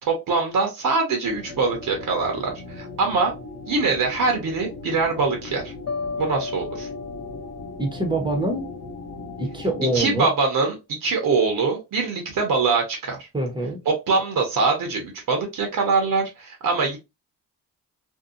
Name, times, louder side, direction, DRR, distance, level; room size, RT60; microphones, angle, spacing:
voice 1, 0.0-3.3 3.7-5.7 6.2-6.9 9.9-13.2 13.8-17.0, right 4 dB, 65° right, 1.0 m, -23 dB
sound 1, 1.2-9.9, left 3 dB, 85° left, 0.8 m, -38 dB
sound 2, 5.9-9.0, left 4 dB, 45° left, 0.5 m, -34 dB
voice 2, 7.8-8.7 9.4-10.3 13.3-13.8, right 1 dB, 15° right, 0.9 m, -25 dB
2.7 x 2.3 x 2.4 m
cardioid pair, 90°, 35 cm